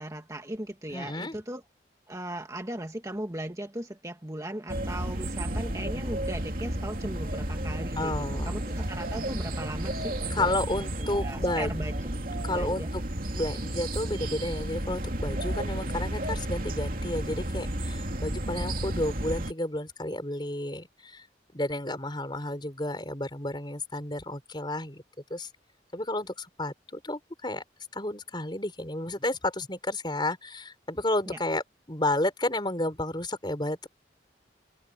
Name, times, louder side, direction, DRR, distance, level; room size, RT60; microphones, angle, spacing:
voice 1, 0.0-1.6 2.1-8.1 8.4-12.1 12.5-12.9 31.3-31.4, right 1 dB, 20° right, 1.6 m, -37 dB
voice 2, 0.9-1.4 8.0-8.5 10.3-11.7 12.4-13.0 13.3-21.2 21.5-25.0 25.3-25.5 25.9-27.6 27.9-33.9, left 1 dB, 25° left, 4.2 m, -31 dB
sound 1, 4.7-19.5, right 1 dB, 50° right, 3.0 m, -32 dB
head